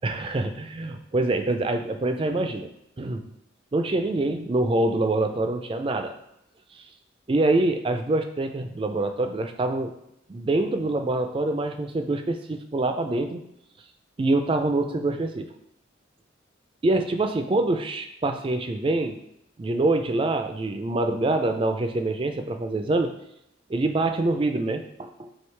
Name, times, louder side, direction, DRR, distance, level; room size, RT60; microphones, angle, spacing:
voice 1, 0.0-2.7 3.0-3.3 3.7-6.2 6.7-6.9 7.3-9.9 10.3-13.4 14.2-15.5 16.8-19.2 19.6-23.1 23.7-25.3, right 2 dB, 25° right, 7 dB, 0.3 m, -25 dB
4.6 x 3.1 x 3.2 m, 0.78 s
head